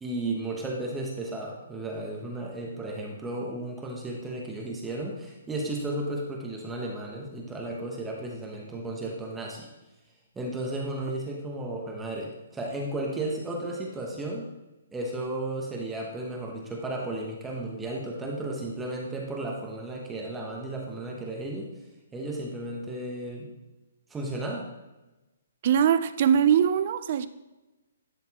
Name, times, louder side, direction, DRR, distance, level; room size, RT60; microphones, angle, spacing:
voice 1, 0.0-9.7 10.3-14.5 14.9-21.7 22.1-23.5 24.1-24.7, right 2 dB, 10° right, -2 dB, 0.9 m, -34 dB
voice 2, 25.6-27.3, right 8 dB, 45° right, 13 dB, 0.3 m, -22 dB
10.5 x 4.1 x 2.9 m, 1.1 s
hypercardioid pair, 160°, 0 cm